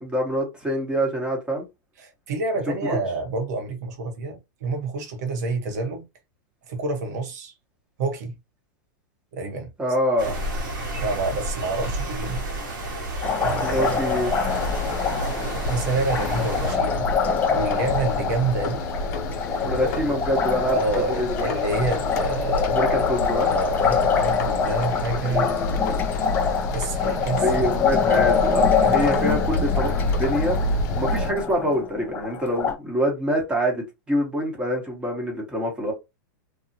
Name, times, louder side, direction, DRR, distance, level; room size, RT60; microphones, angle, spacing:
voice 1, 0.0-1.7 2.8-3.0 9.8-10.3 13.6-14.3 19.6-20.8 21.2-21.5 22.7-23.5 25.3-25.9 27.4-29.9 30.2-30.6 30.9-35.9, equal, 10° right, 1.2 m, -25 dB
voice 2, 2.0-6.0 6.7-7.5 8.0-8.3 9.3-9.7 11.0-12.4 13.4-14.0 15.0-18.9 19.6-19.9 20.7-22.8 23.4-25.5 26.7-27.7 28.0-29.4, right 3 dB, 60° right, 1.1 m, -28 dB
sound 1, 10.2-16.8, right 1 dB, 80° right, 1.4 m, -30 dB
Liquid, 13.2-32.7, left 6 dB, 15° left, 0.4 m, -25 dB
sound 2, 14.5-31.3, left 2 dB, 55° left, 0.8 m, -29 dB
2.8 x 2.3 x 2.7 m
supercardioid pair, 150°, 10 cm